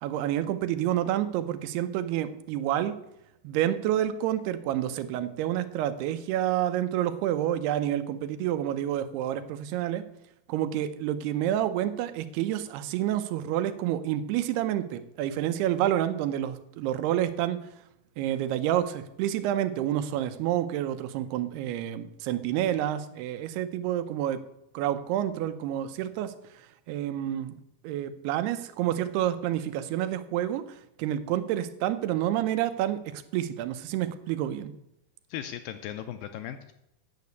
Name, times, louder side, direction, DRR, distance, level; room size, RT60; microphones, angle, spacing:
voice 1, 0.0-3.0 3.4-10.1 10.5-17.6 18.2-24.4 24.7-26.3 26.9-27.6 27.8-30.6 31.0-34.7, right 12 dB, 90° right, 11 dB, 2.8 m, -28 dB
voice 2, 35.3-36.7, left 10 dB, 80° left, 8 dB, 2.1 m, -37 dB
9.5 x 6.7 x 8.1 m, 0.83 s
omnidirectional pair, 4.6 m